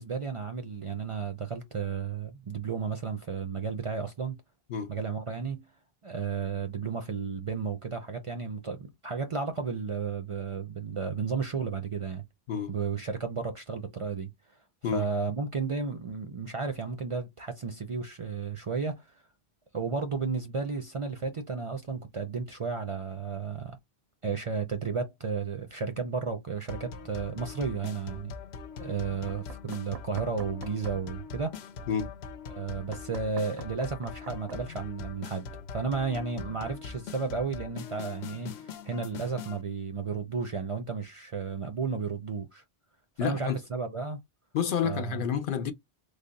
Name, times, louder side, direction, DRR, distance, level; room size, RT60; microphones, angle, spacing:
voice 1, 0.0-4.4 4.9-5.7 6.0-12.2 12.7-14.3 14.9-19.1 19.7-23.8 24.2-28.3 28.8-31.5 32.5-42.6 43.2-44.2 44.8-45.2, right 5 dB, 40° right, 0.5 m, -33 dB
sound 1, 26.7-39.6, left 6 dB, 90° left, 0.9 m, -42 dB
Knock, 29.3-31.0 32.9-34.6, right 6 dB, 75° right, 0.8 m, -47 dB
voice 2, 43.2-43.6 44.5-45.7, left 7 dB, 65° left, 0.7 m, -29 dB
3.3 x 2.1 x 3.9 m
omnidirectional pair, 1.0 m